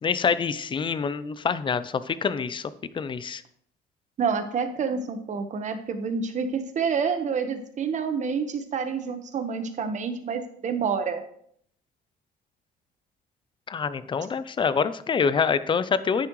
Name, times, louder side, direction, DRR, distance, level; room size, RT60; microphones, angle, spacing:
voice 1, 0.0-2.7 2.9-3.4 13.7-16.3, left 6 dB, 30° left, 15 dB, 0.6 m, -26 dB
voice 2, 4.2-11.2, right 6 dB, 45° right, 8 dB, 1.3 m, -28 dB
9.7 x 9.6 x 3.2 m, 0.67 s
cardioid pair, 110°, 17 cm